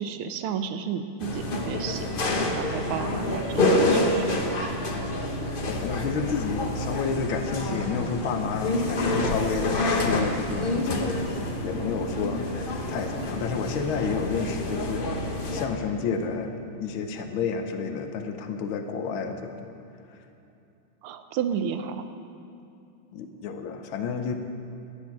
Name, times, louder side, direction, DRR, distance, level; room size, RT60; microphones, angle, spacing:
voice 1, 0.0-4.7 21.0-22.1, right 8 dB, 85° right, 9 dB, 1.6 m, -32 dB
sound 1, 1.2-15.7, left 2 dB, 45° left, 0.7 m, -27 dB
voice 2, 5.7-15.1 15.5-19.7 23.1-24.3, left 5 dB, 75° left, 6 dB, 1.7 m, -30 dB
11.5 x 9.9 x 6.0 m, 2.7 s
omnidirectional pair, 2.3 m